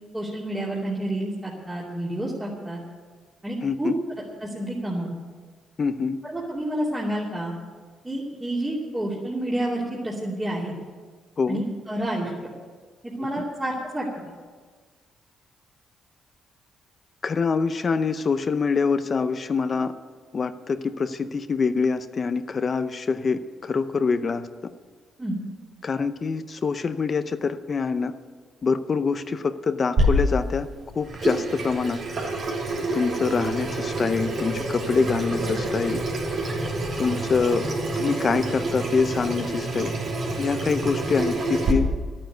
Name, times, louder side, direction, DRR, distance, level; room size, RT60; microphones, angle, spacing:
voice 1, 0.1-2.8 3.4-3.9 4.4-5.1 6.2-7.5 8.0-10.7 11.5-12.3 13.1-14.1 25.2-25.4, right 1 dB, 15° right, -6 dB, 2.8 m, -29 dB
voice 2, 3.6-4.0 5.8-6.2 11.4-11.6 13.4-13.5 17.2-19.9 20.3-24.5 25.8-28.1 28.6-30.7 30.9-32.0 32.9-36.0 37.0-37.7 38.0-39.9 40.4-41.9, left 5 dB, 40° left, 10 dB, 0.6 m, -25 dB
Water tap faucet / Sink (filling or washing), 30.0-41.7, right 1 dB, 55° right, 3.3 m, -27 dB
12.0 x 9.2 x 9.3 m, 1.5 s
cardioid pair, 90°, 0 cm